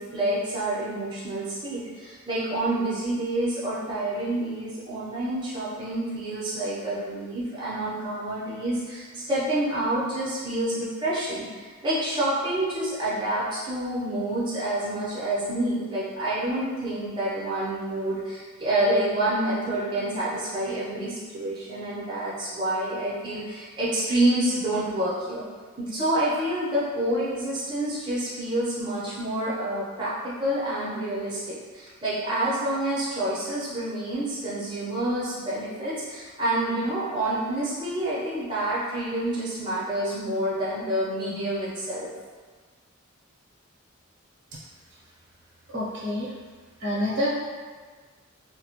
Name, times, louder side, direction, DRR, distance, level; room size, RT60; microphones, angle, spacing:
voice 1, 0.0-25.4 25.8-42.1, right 1 dB, 25° right, -10 dB, 0.6 m, -28 dB
voice 2, 45.7-46.3 46.8-47.3, equal, 60° right, -7 dB, 0.7 m, -27 dB
2.2 x 2.0 x 2.8 m, 1.5 s
head